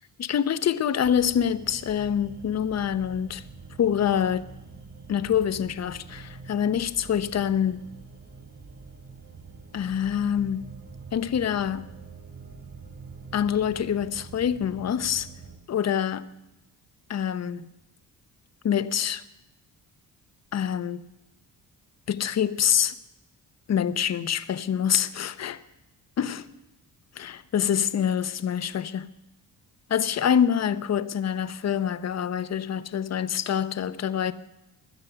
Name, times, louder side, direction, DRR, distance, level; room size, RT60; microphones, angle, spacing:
voice 1, 0.2-3.4 3.8-4.5 5.1-7.8 9.7-10.6 11.1-11.8 13.3-15.3 15.7-16.2 17.1-17.7 18.6-19.2 20.5-21.0 22.1-22.9 23.7-25.6 26.2-26.4 27.2-29.1 29.9-34.3, left 9 dB, 45° left, 0.8 m, -25 dB
sound 1, 1.0-15.6, right 4 dB, 35° right, 3.4 m, -45 dB
17.0 x 11.5 x 6.8 m
cardioid pair, 115°, 36 cm